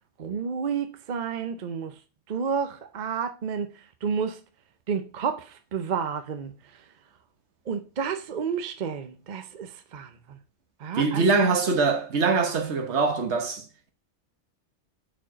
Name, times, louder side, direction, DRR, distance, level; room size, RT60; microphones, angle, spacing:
voice 1, 0.2-1.9 2.3-3.7 4.0-4.4 4.9-6.5 7.7-10.4 10.8-11.3, right 6 dB, 50° right, 0.7 m, -30 dB
voice 2, 10.9-13.9, right 4 dB, 70° right, 1.3 m, -23 dB
4.7 x 4.6 x 6.0 m
omnidirectional pair, 1.2 m